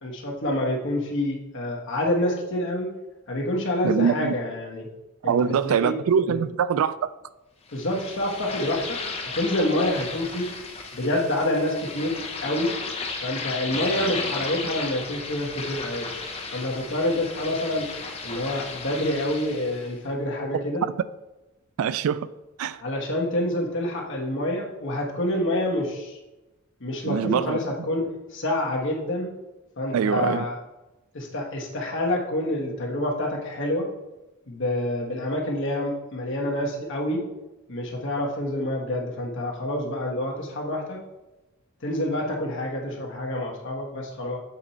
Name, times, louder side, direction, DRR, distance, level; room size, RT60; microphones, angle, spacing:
voice 1, 0.0-2.9 3.3-4.9 5.2-5.9 6.3-6.4 7.7-9.0 9.3-10.5 10.9-12.2 12.4-12.7 13.2-16.1 16.5-17.9 18.2-20.8 22.8-26.2 26.8-29.3 29.8-30.6 31.1-33.9 34.5-37.2 37.7-41.0 41.8-44.4, left 1 dB, 60° left, 1.4 m, -27 dB
voice 2, 3.8-4.4 5.2-7.0 20.5-20.6 21.8-22.3 22.6-22.8 27.1-27.6 29.9-30.5, right 7 dB, 80° right, 0.3 m, -23 dB
sound 1, 7.7-19.9, left 4 dB, 30° left, 0.8 m, -34 dB
7.4 x 4.4 x 4.2 m
head